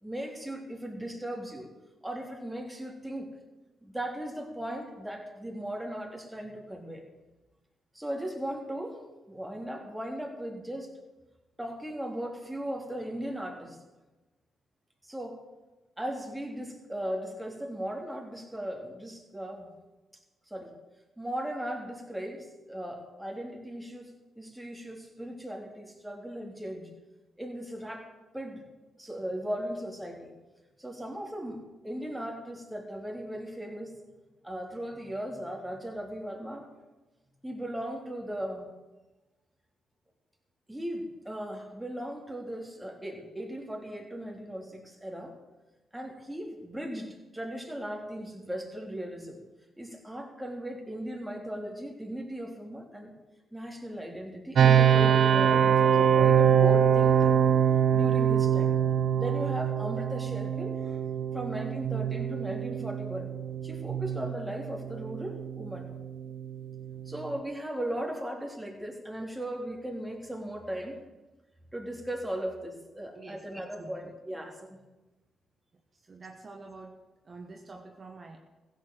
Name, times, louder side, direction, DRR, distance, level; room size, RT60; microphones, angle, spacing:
voice 1, 0.0-1.7 2.0-3.3 3.8-7.0 7.9-9.0 9.3-10.9 11.6-13.8 15.0-15.4 16.0-19.7 20.5-20.7 21.2-24.1 24.4-26.9 27.4-28.1 28.3-28.6 29.0-30.3 30.8-33.9 34.4-36.7 37.4-38.6 40.7-45.3 45.9-49.4 49.8-53.1 53.5-57.4 57.9-58.7 59.1-61.0 61.3-63.3 63.6-65.9 67.0-71.0 71.7-74.8, right 1 dB, 10° right, 1 dB, 3.5 m, -37 dB
sound 1, 54.5-67.4, right 8 dB, 65° right, 0.8 m, -24 dB
voice 2, 73.1-74.1 76.1-76.9 77.2-78.4, right 3 dB, 45° right, 2 dB, 1.5 m, -47 dB
15.5 x 7.5 x 7.7 m, 1.1 s
hypercardioid pair, 50°, 0 cm